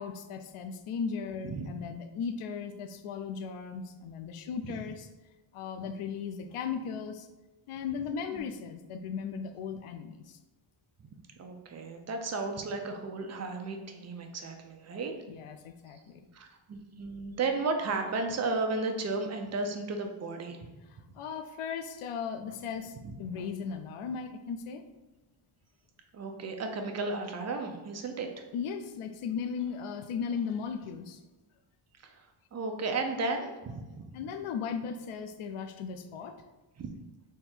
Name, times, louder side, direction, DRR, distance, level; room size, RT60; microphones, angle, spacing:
voice 1, 0.0-5.1 5.5-7.3 7.7-10.4 15.3-16.0 21.2-24.8 28.5-31.2 34.1-36.3, left 6 dB, 90° left, 8 dB, 0.5 m, -37 dB
voice 2, 11.4-15.1 16.3-20.6 23.0-23.1 26.1-28.3 32.0-32.1 32.5-34.0 36.8-36.9, right 3 dB, 35° right, 4 dB, 0.5 m, -34 dB
3.6 x 2.8 x 4.3 m, 1.1 s
wide cardioid pair, 140°, 49 cm